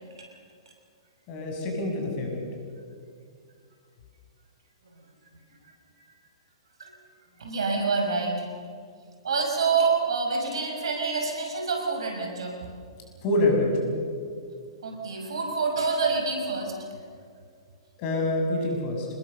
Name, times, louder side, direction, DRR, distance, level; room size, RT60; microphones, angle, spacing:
voice 1, 1.3-2.4 13.2-13.9 18.0-19.1, left 2 dB, 40° left, 1 dB, 7.3 m, -26 dB
voice 2, 7.4-8.5 9.2-12.7 14.8-16.7, right 4 dB, 65° right, 2 dB, 5.9 m, -27 dB
27.0 x 21.0 x 6.8 m, 2.2 s
figure-of-eight pair, 110°, 3 cm